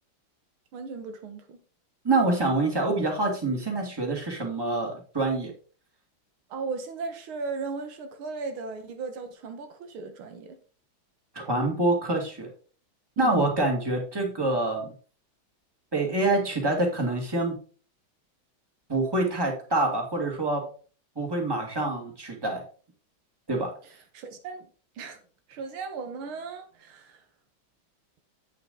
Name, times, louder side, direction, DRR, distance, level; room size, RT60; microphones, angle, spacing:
voice 1, 0.7-1.6 6.5-10.6 13.2-13.5 23.8-24.7 25.0-25.2 25.5-27.2, right 4 dB, 90° right, 2.0 m, -37 dB
voice 2, 2.0-5.5 11.4-12.5 13.2-14.9 15.9-17.6 18.9-20.6 21.2-22.6 23.5-23.7, right 2 dB, 10° right, 2.0 m, -26 dB
8.3 x 6.7 x 3.8 m
omnidirectional pair, 2.2 m